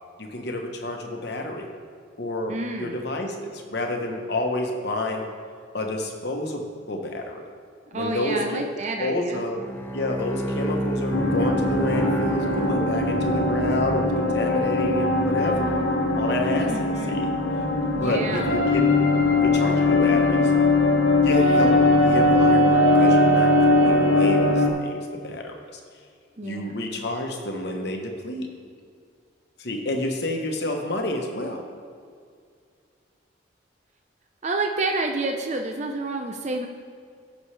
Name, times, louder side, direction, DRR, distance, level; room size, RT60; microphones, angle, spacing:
voice 1, 0.2-1.7 2.2-5.3 5.7-7.4 7.9-8.6 9.0-9.6 9.9-15.7 16.1-17.3 18.0-18.9 19.4-20.5 21.2-25.8 26.4-28.5 29.6-31.6, left 1 dB, 55° left, 2 dB, 1.1 m, -29 dB
voice 2, 2.5-3.0 7.9-9.4 16.7-17.2 18.0-18.5 26.4-26.8 34.4-36.7, right 2 dB, 35° right, 4 dB, 0.5 m, -29 dB
Bowed string instrument, 9.5-13.6, right 1 dB, 10° left, 0.6 m, -30 dB
sound 1, 11.1-24.7, left 2 dB, 80° left, 1.1 m, -20 dB
15.5 x 6.2 x 3.3 m, 2.2 s
head